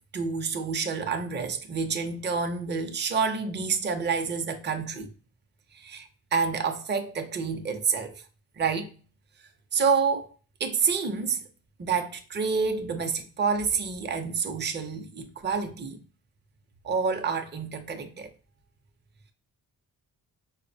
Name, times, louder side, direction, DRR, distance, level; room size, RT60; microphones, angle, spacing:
voice 1, 0.1-5.1 5.7-8.1 8.6-8.9 9.7-10.3 10.6-11.4 11.8-16.0 16.8-18.3, right 5 dB, 30° right, 0.5 m, -28 dB
4.6 x 2.0 x 2.6 m
wide cardioid pair, 120°, 39 cm